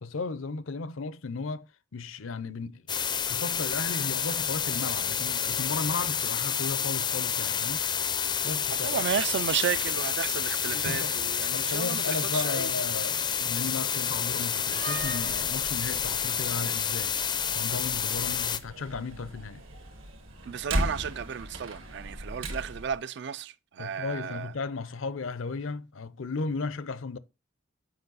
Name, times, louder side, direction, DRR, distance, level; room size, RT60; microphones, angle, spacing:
voice 1, 0.0-2.9 3.3-7.9 8.4-9.1 10.7-11.2 11.5-17.2 17.5-19.6 23.8-27.2, left 4 dB, 70° left, 0.6 m, -35 dB
sound 1, 2.9-18.6, left 8 dB, 20° left, 0.4 m, -29 dB
voice 2, 8.8-12.7 20.5-24.5, right 8 dB, 55° right, 0.3 m, -33 dB
Slam, 14.6-23.0, right 1 dB, 70° right, 1.5 m, -38 dB
7.9 x 5.4 x 3.9 m
head